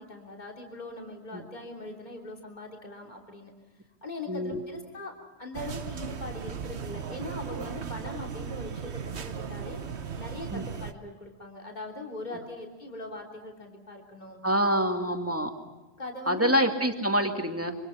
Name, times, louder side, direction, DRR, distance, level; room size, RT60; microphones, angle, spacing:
voice 1, 0.0-3.5 4.0-14.4 16.0-16.6, left 2 dB, 40° left, 0 dB, 3.4 m, -41 dB
voice 2, 4.3-4.6 10.5-10.7 12.3-12.4 14.4-15.5 16.3-17.8, equal, 10° right, 3 dB, 2.3 m, -26 dB
sound 1, 5.5-10.9, right 6 dB, 75° right, 1.4 m, -37 dB
26.5 x 25.5 x 5.8 m, 1.2 s
omnidirectional pair, 1.1 m